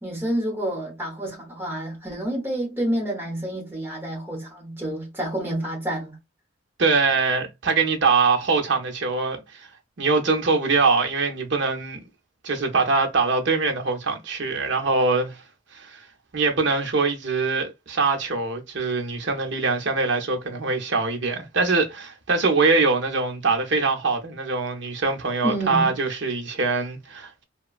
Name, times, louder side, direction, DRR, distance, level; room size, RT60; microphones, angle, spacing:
voice 1, 0.0-6.2 25.4-26.0, right 1 dB, 10° right, 1.0 m, -29 dB
voice 2, 6.8-9.7 10.0-12.0 12.4-15.4 15.7-16.0 16.3-27.4, right 4 dB, 70° right, 0.7 m, -23 dB
3.0 x 2.2 x 2.4 m
head